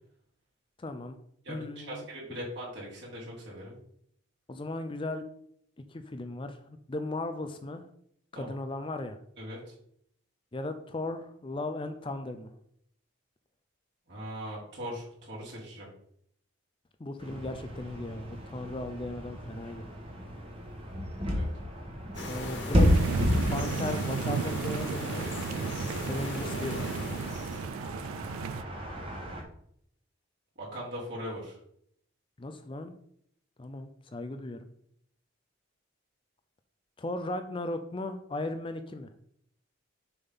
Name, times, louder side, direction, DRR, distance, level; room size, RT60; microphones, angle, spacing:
voice 1, 0.8-1.2 1.5-2.0 4.5-5.3 5.9-7.9 8.3-9.2 10.5-12.5 17.0-19.8 22.3-22.9 23.5-25.3 26.1-26.9 32.4-32.9 33.6-34.6 37.0-39.1, left 2 dB, 25° left, 8 dB, 0.4 m, -36 dB
voice 2, 1.4-3.8 8.3-8.5 9.4-9.7 14.1-15.9 21.3-21.5 30.6-31.6, equal, 55° right, -5 dB, 3.1 m, -40 dB
sound 1, 17.2-29.4, left 1 dB, 25° right, 1.3 m, -32 dB
sound 2, 22.1-27.7, left 1 dB, 60° left, 1.9 m, -38 dB
sound 3, 22.8-28.6, right 6 dB, 85° right, 0.3 m, -34 dB
6.8 x 3.6 x 5.6 m, 0.68 s
head